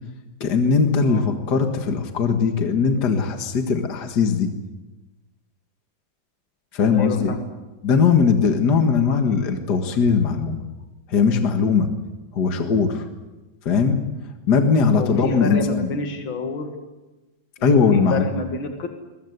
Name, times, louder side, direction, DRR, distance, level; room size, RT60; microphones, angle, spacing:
voice 1, 0.4-4.5 6.7-7.3 7.8-10.6 11.1-11.9 12.3-13.1 13.7-14.0 14.5-15.9 17.6-18.3, left 5 dB, 55° left, 5 dB, 2.2 m, -19 dB
voice 2, 6.9-7.4 14.9-16.7 17.6-18.9, left 2 dB, 80° left, 4 dB, 2.9 m, -28 dB
22.0 x 21.5 x 8.2 m, 1.1 s
omnidirectional pair, 2.1 m